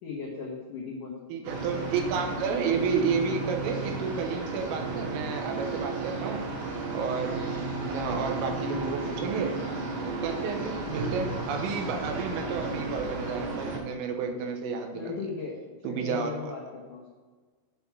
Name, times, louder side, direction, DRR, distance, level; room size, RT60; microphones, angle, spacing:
voice 1, 0.0-1.4 8.6-9.0 10.5-10.6 15.0-15.5 15.8-17.1, left 5 dB, 85° left, -4 dB, 1.8 m, -37 dB
voice 2, 1.3-6.5 6.9-9.5 9.9-15.3 15.9-16.6, right 5 dB, 85° right, 4 dB, 3.6 m, -31 dB
sound 1, 1.4-13.8, right 3 dB, 60° right, 3.7 m, -34 dB
9.4 x 4.7 x 6.9 m, 1.4 s
omnidirectional pair, 5.8 m